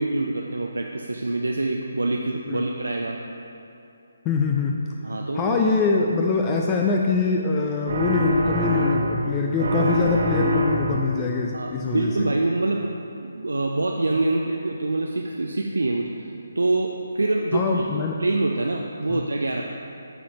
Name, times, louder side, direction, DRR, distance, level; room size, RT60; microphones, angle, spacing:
voice 1, 0.0-3.2 5.0-5.6 11.5-12.9 13.2-16.3 16.6-17.9 18.2-19.6, right 2 dB, 70° right, 1 dB, 0.4 m, -25 dB
voice 2, 4.3-4.8 5.3-12.3 17.5-18.2 19.1-19.2, left 4 dB, 20° left, 0 dB, 0.3 m, -24 dB
sound 1, 7.9-9.3 9.6-11.1, equal, 50° right, 0.8 m, -23 dB
12.0 x 4.2 x 2.9 m, 2.8 s
figure-of-eight pair, 145°, 0 cm